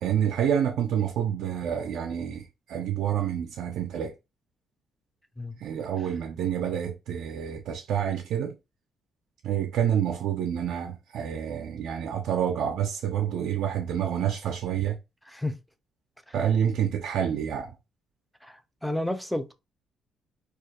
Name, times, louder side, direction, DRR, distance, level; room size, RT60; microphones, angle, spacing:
voice 1, 0.0-4.1 5.6-8.5 9.4-15.0 16.3-17.7, right 9 dB, 75° right, 0.3 m, -28 dB
voice 2, 15.3-15.6 16.3-16.4 18.4-19.5, left 1 dB, ahead, 0.4 m, -31 dB
2.3 x 2.1 x 2.8 m
cardioid pair, 90°, 0 cm